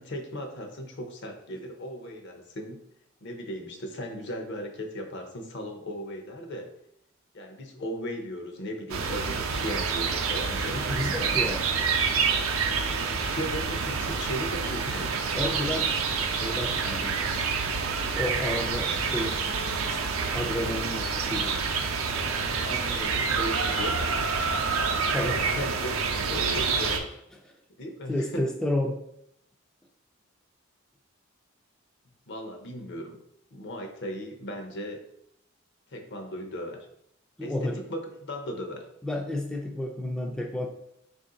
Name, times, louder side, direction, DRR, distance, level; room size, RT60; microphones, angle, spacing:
voice 1, 0.0-2.8 3.2-6.7 7.3-11.4 12.8-15.1 22.6-24.1 25.3-26.0 26.2-27.1 27.8-28.4 32.3-33.2 33.5-35.0 35.9-36.9 37.4-38.0 38.3-38.9, equal, 60° left, 5 dB, 0.7 m, -37 dB
sound 1, 8.9-27.0, right 5 dB, 80° right, 0.5 m, -28 dB
voice 2, 10.7-11.6 14.9-16.0 16.3-17.4 18.1-19.4 19.9-20.0 20.3-21.6 25.1-25.4 27.4-27.5 28.1-29.0 37.4-37.8 39.0-40.7, left 1 dB, 5° left, 1 dB, 0.3 m, -31 dB
4.4 x 2.6 x 3.8 m, 0.76 s
head